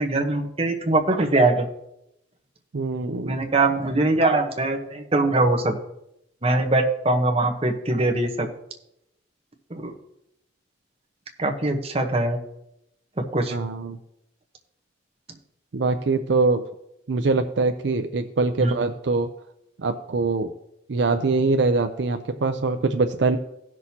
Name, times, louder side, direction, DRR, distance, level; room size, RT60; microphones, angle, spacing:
voice 1, 0.0-1.7 3.2-5.8 6.4-8.5 9.7-9.9 11.4-12.4 13.3-13.6 18.6-18.7, right 2 dB, 30° right, 3 dB, 1.0 m, -22 dB
voice 2, 2.7-3.4 13.5-14.0 15.7-16.6 17.1-19.3 19.8-20.5 20.9-23.4, right 3 dB, 65° right, 7 dB, 0.5 m, -23 dB
16.5 x 6.2 x 2.8 m, 0.83 s
head